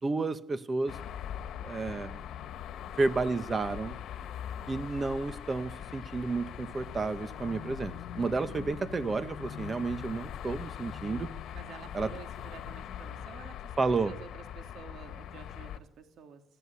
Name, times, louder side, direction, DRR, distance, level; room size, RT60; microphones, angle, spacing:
voice 1, 0.0-1.0 1.6-2.2 3.0-4.0 4.7-11.3 11.9-12.1 13.8-14.1, right 3 dB, 30° right, 12 dB, 1.5 m, -31 dB
sound 1, 0.9-15.8, left 9 dB, 75° left, 1.5 m, -41 dB
voice 2, 11.5-16.4, right 6 dB, 75° right, 6 dB, 2.9 m, -50 dB
18.5 x 15.0 x 9.7 m, 0.74 s
cardioid pair, 90°, 0 cm